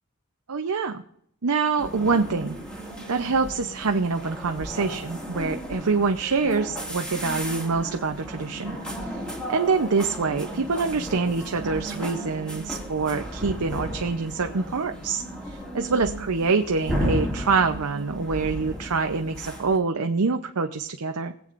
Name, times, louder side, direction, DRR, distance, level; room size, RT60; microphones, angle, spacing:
voice 1, 0.5-1.0 1.4-2.6 3.1-8.8 9.1-9.2 9.5-21.3, right 4 dB, 75° right, 5 dB, 0.7 m, -25 dB
sound 1, 1.8-19.8, equal, 5° left, 2.2 m, -34 dB
21.0 x 8.5 x 2.5 m, 0.71 s
head